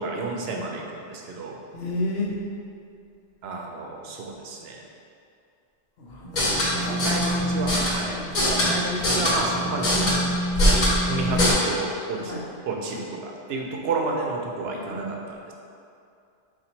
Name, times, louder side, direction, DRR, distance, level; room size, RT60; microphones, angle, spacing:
voice 1, 0.0-1.6 3.4-4.8 6.7-10.2 11.0-12.3 12.7-15.5, right 3 dB, 70° right, 0 dB, 0.8 m, -31 dB
voice 2, 1.7-2.4 6.0-7.1 8.0-8.4 12.2-12.5 14.7-15.0, left 2 dB, 70° left, -2 dB, 0.9 m, -32 dB
sound 1, 6.2-11.5, equal, 50° left, 1.0 m, -23 dB
3.9 x 2.5 x 4.3 m, 2.5 s
omnidirectional pair, 1.2 m